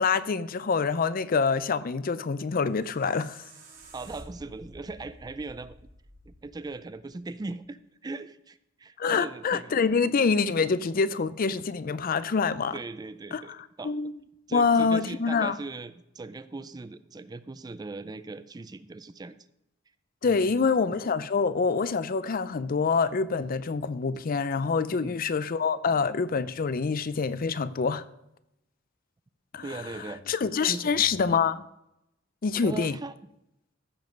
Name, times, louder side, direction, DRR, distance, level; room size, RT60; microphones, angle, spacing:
voice 1, 0.0-3.4 9.0-12.8 13.3-13.4 13.8-14.1 14.5-15.6 20.2-28.0 29.5-29.8 30.3-31.6 32.4-33.0, left 5 dB, 45° left, 0.4 m, -26 dB
sound 1, 2.7-7.5, right 1 dB, 55° right, 3.8 m, -51 dB
voice 2, 3.9-5.8 6.3-9.7 10.6-10.7 12.7-13.9 14.5-19.3 20.2-20.7 24.9-25.2 29.6-30.2 30.7-30.9 32.6-33.1, right 3 dB, 20° right, 0.4 m, -39 dB
15.0 x 5.2 x 5.2 m
head